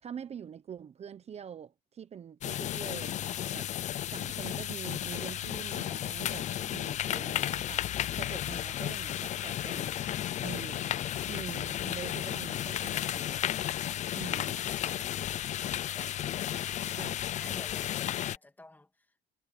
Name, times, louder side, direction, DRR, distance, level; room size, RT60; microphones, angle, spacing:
voice 1, 0.0-7.8 8.1-10.0 10.4-11.0 11.3-13.6 14.1-14.6 16.9-17.2, right 8 dB, 40° right, 0.9 m, -45 dB
sound 1, 2.4-18.4, left 12 dB, 45° left, 0.4 m, -33 dB
voice 2, 16.0-19.2, left 2 dB, 10° left, 2.4 m, -53 dB
cardioid pair, 110°, 17 cm